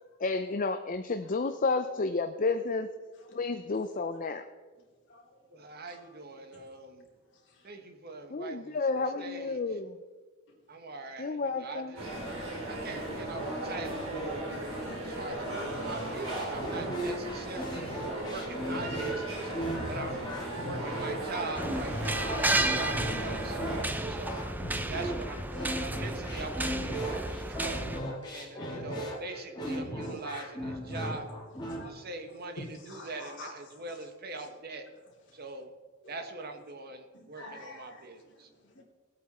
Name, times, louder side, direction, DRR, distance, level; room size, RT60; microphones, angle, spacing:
voice 1, 0.2-2.9 3.3-4.5 8.3-10.0 11.2-11.9, left 3 dB, 40° left, 9 dB, 0.5 m, -31 dB
voice 2, 1.2-1.6 3.2-3.4 4.1-4.2 4.8-5.4 5.9-6.2 6.5-6.6 7.3-7.7 10.5-10.6 22.6-23.3 24.0-24.2 25.0-25.2 25.5-25.6 28.0-29.0 30.0-30.4 31.0-31.2 31.6-32.1 32.6-34.1 34.4-34.5 35.3-35.4 36.0-36.3 37.1-38.8, left 2 dB, 55° left, -2 dB, 3.0 m, -51 dB
voice 3, 5.5-7.0 7.6-9.8 10.7-12.1 12.7-14.6 15.0-19.5 19.8-23.6 24.1-24.5 24.9-27.8 28.3-31.2 31.8-34.9 35.3-35.7 36.1-38.5, right 3 dB, 45° right, 5 dB, 1.3 m, -42 dB
sound 1, 12.0-23.9, right 1 dB, 70° right, 3.7 m, -36 dB
sound 2, 15.9-31.8, equal, 20° left, 2.3 m, -37 dB
sound 3, 21.5-28.0, right 2 dB, 10° right, 0.5 m, -33 dB
19.0 x 8.6 x 4.3 m, 1.4 s
head